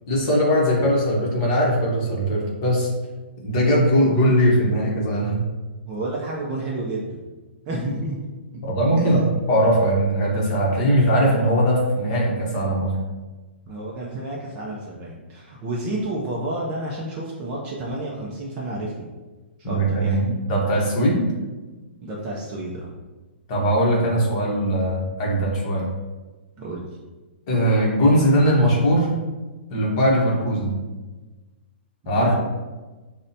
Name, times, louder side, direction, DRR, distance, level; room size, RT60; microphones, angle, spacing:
voice 1, 0.1-2.9 3.4-5.4 8.6-13.0 19.6-21.3 23.5-25.9 27.5-29.1 29.7-30.7 32.1-32.3, equal, 30° left, -3 dB, 0.9 m, -20 dB
voice 2, 5.9-7.2 7.7-8.2 8.5-8.6 9.0-9.3 13.7-19.1 19.6-20.3 22.0-22.9 26.6-26.9 32.0-32.3, right 1 dB, 20° right, -4 dB, 0.3 m, -30 dB
5.4 x 2.1 x 2.6 m, 1.2 s
hypercardioid pair, 170°, 7 cm